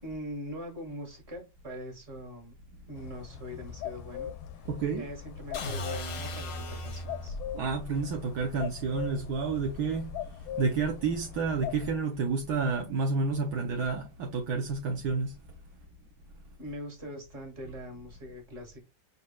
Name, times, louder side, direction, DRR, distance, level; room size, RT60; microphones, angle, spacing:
voice 1, 0.0-2.6 2.9-4.7 5.0-7.4 16.6-18.8, equal, 35° right, 1.8 m, -42 dB
sound 1, 2.9-12.0, left 9 dB, 90° left, 1.4 m, -41 dB
voice 2, 4.7-5.0 7.5-10.1 10.6-15.3, right 4 dB, 70° right, 1.0 m, -30 dB
sound 2, 5.5-7.5, left 1 dB, 60° left, 0.8 m, -36 dB
5.1 x 4.2 x 2.2 m
omnidirectional pair, 2.2 m